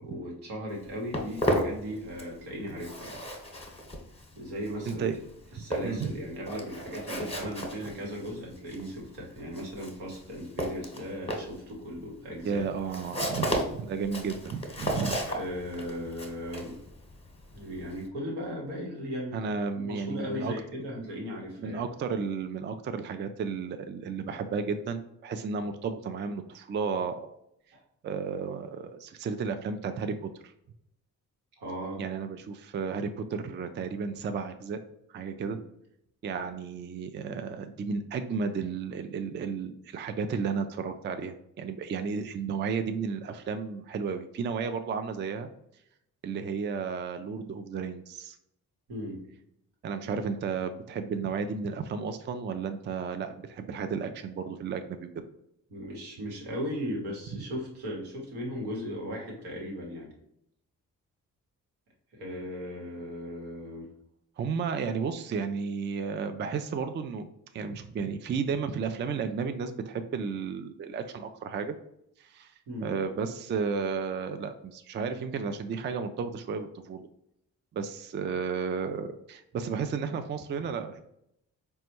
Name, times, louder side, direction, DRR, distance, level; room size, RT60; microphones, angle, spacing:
voice 1, 0.0-3.2 4.4-5.0 5.5-12.6 15.3-16.8 17.5-21.8 27.7-27.8 31.6-32.0 48.9-49.2 55.7-60.1 62.1-63.9 72.7-72.9, equal, 80° right, -2 dB, 1.2 m, -37 dB
Walk footsteps, 0.7-2.4 2.7-18.1, equal, 15° left, 1.0 m, -34 dB
voice 2, 5.5-6.1 12.4-15.2 19.3-20.5 21.6-27.4 28.0-30.5 32.0-34.8 35.1-35.6 36.2-45.5 46.2-48.4 49.8-55.1 64.4-67.3 67.5-71.7 72.2-72.5 72.8-77.1 77.7-81.0, right 5 dB, 30° right, 8 dB, 0.3 m, -33 dB
4.1 x 2.3 x 2.9 m, 0.76 s
hypercardioid pair, 45°, 40 cm